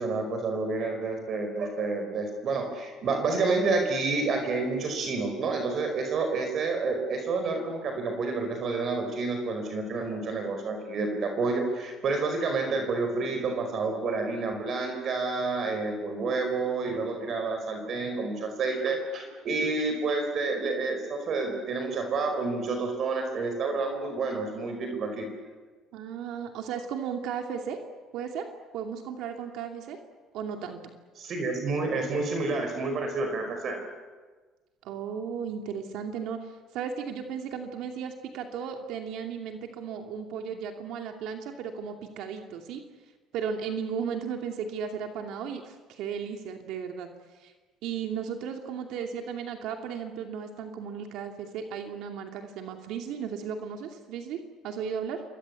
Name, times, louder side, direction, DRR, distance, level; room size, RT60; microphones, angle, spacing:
voice 1, 0.0-25.3 31.2-33.8, right 3 dB, 40° right, 4 dB, 5.1 m, -29 dB
voice 2, 25.9-27.8 28.1-28.5 28.7-30.0 30.3-30.8 34.8-42.8 43.3-47.1 47.3-47.5 47.8-55.2, right 7 dB, 65° right, 4 dB, 2.6 m, -35 dB
29.0 x 24.0 x 8.4 m, 1.3 s
cardioid pair, 150°, 0 cm